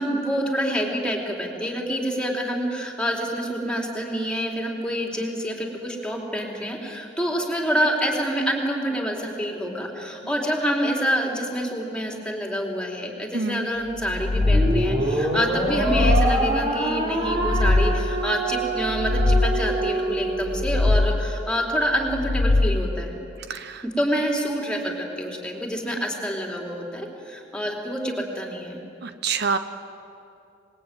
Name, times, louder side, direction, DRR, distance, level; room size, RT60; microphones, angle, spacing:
voice 1, 0.0-23.2 24.0-28.8, equal, 5° left, 0 dB, 3.8 m, -27 dB
voice 2, 13.3-13.7 23.5-23.8 29.0-29.6, right 5 dB, 60° right, 9 dB, 1.0 m, -26 dB
sound 1, 14.0-15.1 15.6-16.7 17.2-18.3 18.8-19.9 20.4-21.5 22.0-23.1, left 2 dB, 35° left, 0.5 m, -23 dB
sound 2, 14.4-20.9, right 2 dB, 35° right, 3.8 m, -26 dB
26.5 x 21.5 x 9.2 m, 2.6 s
head